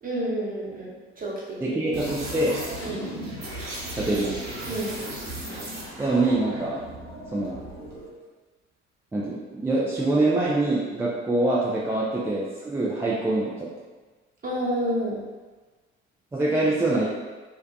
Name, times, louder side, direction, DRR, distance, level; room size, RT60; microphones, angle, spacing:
voice 1, 0.0-1.9 2.8-3.1 4.7-4.9 14.4-15.2, right 1 dB, 25° right, -5 dB, 0.9 m, -30 dB
voice 2, 1.6-2.5 4.0-4.3 6.0-6.8 7.3-7.6 9.1-13.7 16.3-17.1, right 2 dB, 10° right, -7 dB, 0.3 m, -24 dB
sound 1, 1.9-8.1, right 1 dB, 55° right, 0.9 m, -36 dB
2.5 x 2.2 x 2.3 m, 1.3 s
figure-of-eight pair, 50°, 32 cm